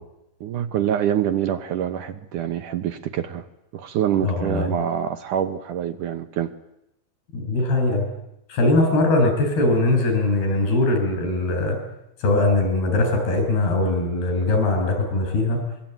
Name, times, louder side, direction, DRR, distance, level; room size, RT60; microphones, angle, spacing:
voice 1, 0.4-3.5 3.7-6.5, right 9 dB, 65° right, 9 dB, 2.3 m, -25 dB
voice 2, 4.2-4.7 7.3-8.0 8.5-11.8 12.2-15.6, left 2 dB, 80° left, 5 dB, 8.7 m, -21 dB
25.0 x 23.0 x 9.1 m, 0.85 s
omnidirectional pair, 4.5 m